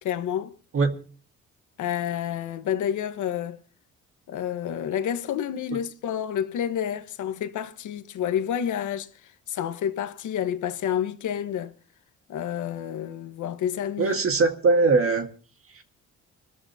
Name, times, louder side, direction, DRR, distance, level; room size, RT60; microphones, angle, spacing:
voice 1, 0.0-0.6 1.8-3.6 4.3-11.7 12.3-14.1, left 9 dB, 75° left, 1.4 m, -29 dB
voice 2, 14.0-15.3, right 3 dB, 45° right, 1.8 m, -20 dB
24.5 x 13.0 x 2.9 m
cardioid pair, 90°, 30 cm